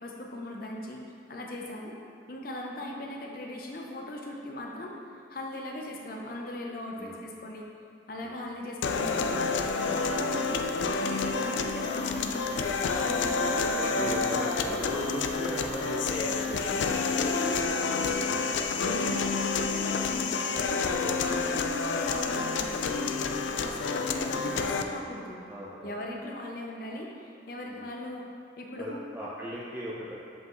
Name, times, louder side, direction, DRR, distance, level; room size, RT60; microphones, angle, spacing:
voice 1, 0.0-2.0 2.3-5.0 5.3-7.7 8.1-9.4 9.8-12.5 13.0-14.2 17.1-25.4 25.8-28.3 28.6-29.0, left 1 dB, 50° left, 0 dB, 0.7 m, -39 dB
sound 1, 8.8-24.8, left 4 dB, 75° left, 0.4 m, -29 dB
sound 2, 11.8-17.5, right 3 dB, 85° right, 0.8 m, -50 dB
voice 2, 13.8-17.3 19.0-19.2 21.0-21.4 23.7-24.1 25.4-25.9 27.7-27.9 28.8-30.1, equal, 10° right, -8 dB, 0.6 m, -38 dB
7.7 x 5.2 x 3.1 m, 2.6 s
head